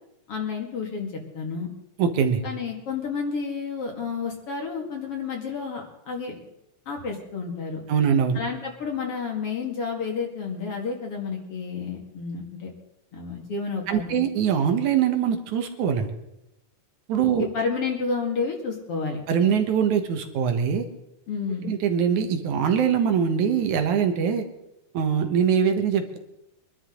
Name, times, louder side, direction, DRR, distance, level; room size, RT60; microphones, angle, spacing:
voice 1, 0.3-1.7 2.4-6.4 6.9-7.8 8.3-12.7 13.1-14.2 17.4-19.2 21.3-21.7, left 5 dB, 50° left, 1 dB, 2.8 m, -30 dB
voice 2, 2.0-2.4 7.9-8.4 13.9-16.1 17.1-17.5 19.3-20.9 21.6-24.4 24.9-26.2, right 7 dB, 75° right, 7 dB, 2.7 m, -22 dB
24.0 x 12.0 x 3.9 m, 0.85 s
omnidirectional pair, 3.5 m